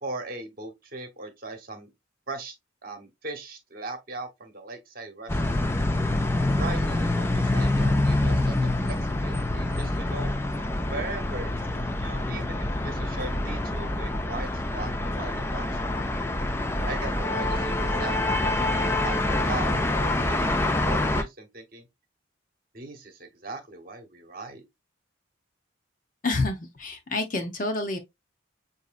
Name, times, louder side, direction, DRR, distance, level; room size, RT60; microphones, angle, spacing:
voice 1, 0.0-1.9 2.3-2.5 2.8-5.7 6.6-10.4 10.9-11.5 12.0-16.1 16.9-19.2 19.5-21.9 22.7-24.6, right 3 dB, 45° right, 1.0 m, -39 dB
sound 1, 5.3-21.2, left 2 dB, 10° left, 0.4 m, -26 dB
voice 2, 26.2-28.0, left 2 dB, 40° left, 0.8 m, -28 dB
6.0 x 2.7 x 2.4 m
head